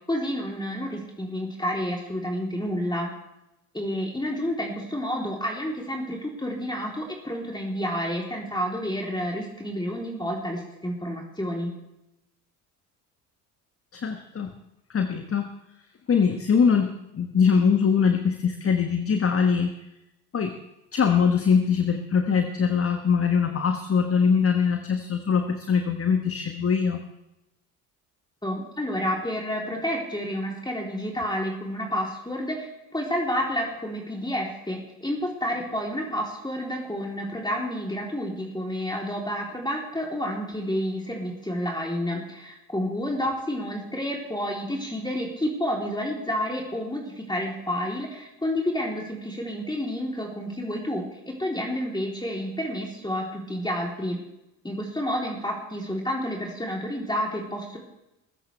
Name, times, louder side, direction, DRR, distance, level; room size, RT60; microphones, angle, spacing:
voice 1, 0.1-3.1 3.7-11.7 28.4-54.2 54.6-57.8, equal, 10° left, -1 dB, 3.3 m, -30 dB
voice 2, 13.9-14.5 14.9-15.5 16.1-19.8 20.3-20.6 20.9-27.0, left 6 dB, 30° left, 6 dB, 1.4 m, -22 dB
21.0 x 15.5 x 3.4 m, 0.92 s
figure-of-eight pair, 50°, 49 cm